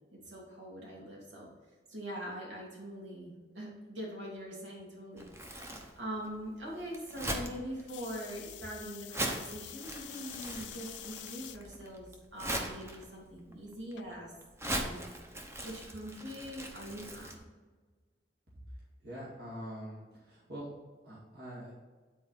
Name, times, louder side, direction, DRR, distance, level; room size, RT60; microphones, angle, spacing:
voice 1, 0.1-1.5 1.9-5.3 6.0-12.1 12.3-14.3 14.6-15.1 15.6-17.4, equal, 80° right, -3 dB, 2.9 m, -43 dB
Crumpling crinkling, 5.2-17.3, right 1 dB, 15° right, 0.8 m, -41 dB
sound 1, 7.9-11.6 12.2-12.7 14.0-14.1, left 15 dB, 70° left, 0.3 m, -47 dB
voice 2, 19.0-20.7 21.0-21.7, equal, 55° right, -7 dB, 2.1 m, -44 dB
9.5 x 4.3 x 5.7 m, 1.4 s
head